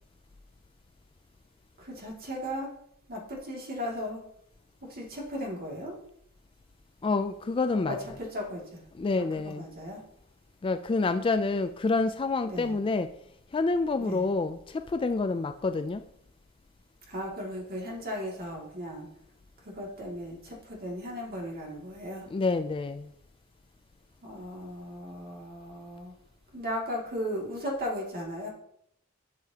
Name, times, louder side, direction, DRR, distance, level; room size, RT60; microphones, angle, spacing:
voice 1, 1.8-2.7 3.1-4.2 4.8-6.0 7.9-8.8 9.2-10.0 12.4-12.7 14.0-14.2 17.1-19.1 19.6-22.3 24.2-26.1 26.5-28.5, equal, 45° right, 2.4 m, -36 dB
voice 2, 7.0-8.2 8.9-9.7 10.6-13.1 13.5-16.0 22.3-23.1, left 3 dB, 25° left, 0.3 m, -28 dB
11.5 x 6.5 x 2.9 m
head